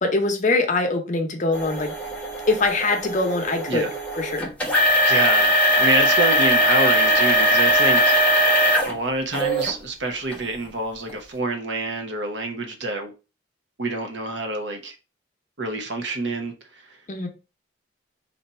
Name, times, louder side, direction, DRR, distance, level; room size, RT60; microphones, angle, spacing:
voice 1, 0.0-2.0 2.5-3.9 4.1-4.5 17.1-17.3, left 3 dB, 40° left, 0.7 m, -23 dB
sound 1, 1.5-8.9 9.3-9.7 10.3-10.4 11.1-11.2, equal, 5° left, 0.9 m, -20 dB
voice 2, 5.0-8.1 8.8-13.1 13.8-15.0 15.6-17.0, right 2 dB, 70° right, 0.9 m, -27 dB
3.3 x 2.7 x 4.2 m
head